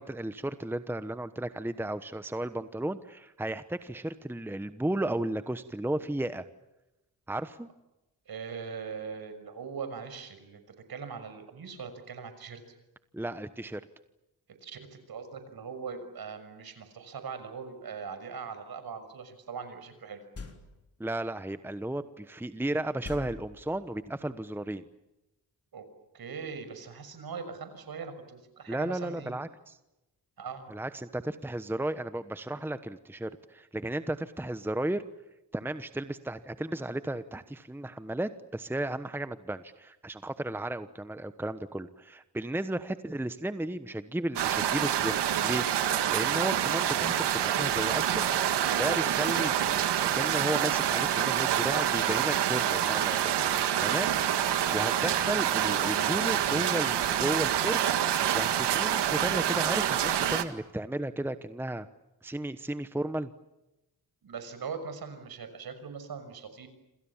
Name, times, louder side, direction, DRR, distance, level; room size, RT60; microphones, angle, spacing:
voice 1, 0.0-6.4 7.3-7.7 13.1-13.8 21.0-24.9 28.7-29.8 30.7-35.0 35.5-45.6 45.9-48.2 48.8-53.4 53.8-54.1 54.7-57.8 58.3-61.9 62.2-63.3, right 1 dB, 5° right, 12 dB, 1.1 m, -34 dB
voice 2, 8.3-12.6 14.6-20.2 25.7-25.8 26.1-29.3 30.4-30.7 64.2-66.7, right 6 dB, 60° right, 10 dB, 6.2 m, -41 dB
sound 1, 20.3-21.0 23.0-24.1, left 4 dB, 35° left, 3.6 m, -44 dB
sound 2, 44.4-60.4, right 10 dB, 90° right, 2.0 m, -27 dB
27.5 x 27.5 x 7.3 m, 0.97 s
cardioid pair, 90°, 40 cm